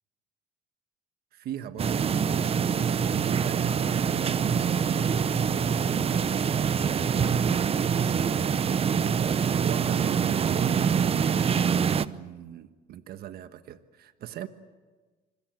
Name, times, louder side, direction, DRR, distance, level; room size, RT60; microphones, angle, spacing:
voice 1, 1.3-4.4 6.4-8.5 8.8-14.5, right 10 dB, 65° right, 10 dB, 1.3 m, -40 dB
sound 1, 1.7-7.5, left 7 dB, 85° left, 4.9 m, -47 dB
sound 2, 1.8-12.1, right 7 dB, 35° right, 0.8 m, -25 dB
26.0 x 25.0 x 7.7 m, 1.3 s
cardioid pair, 110°, 17 cm